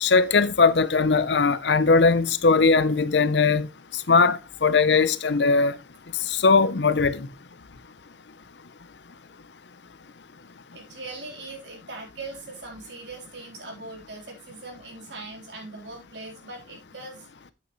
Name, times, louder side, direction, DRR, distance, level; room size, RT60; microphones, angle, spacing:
voice 1, 0.0-3.7 4.1-5.7 6.4-7.3, left 4 dB, 70° left, 0.7 m, -19 dB
voice 2, 10.7-17.3, right 2 dB, 70° right, 3.8 m, -40 dB
8.5 x 8.4 x 3.1 m
head